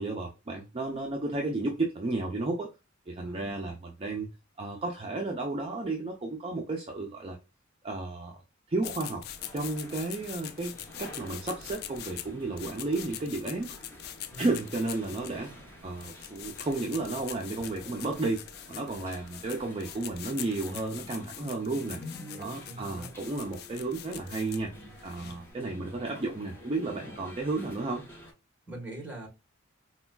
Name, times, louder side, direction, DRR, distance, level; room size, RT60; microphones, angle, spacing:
voice 1, 0.0-2.7 3.1-4.3 4.6-7.4 7.8-8.4 8.7-9.2 9.5-13.7 14.4-15.5 15.8-22.0 22.4-24.7 25.0-28.0, right 2 dB, 30° right, 0.5 m, -33 dB
voice 2, 3.2-3.7 4.1-4.3 14.3-14.5 22.3-23.1 25.6-26.0 28.7-29.3, right 1 dB, 5° right, 1.3 m, -44 dB
sound 1, 8.8-25.5, left 11 dB, 50° left, 0.3 m, -44 dB
sound 2, 9.3-28.3, left 1 dB, 10° left, 0.9 m, -49 dB
4.2 x 2.2 x 2.2 m
head